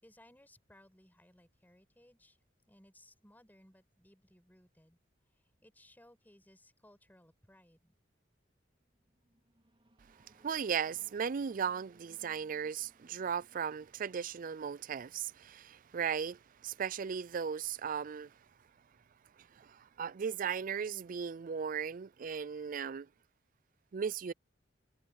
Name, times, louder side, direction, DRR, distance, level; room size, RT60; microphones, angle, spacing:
voice 1, 0.0-2.4 2.7-5.0 5.3-7.9, left 1 dB, 10° left, 5.4 m, -63 dB
sound 1, 8.5-15.9, right 1 dB, 30° right, 3.6 m, -68 dB
voice 2, 10.4-18.3 19.4-23.1 23.9-24.3, right 7 dB, 45° right, 0.4 m, -37 dB
head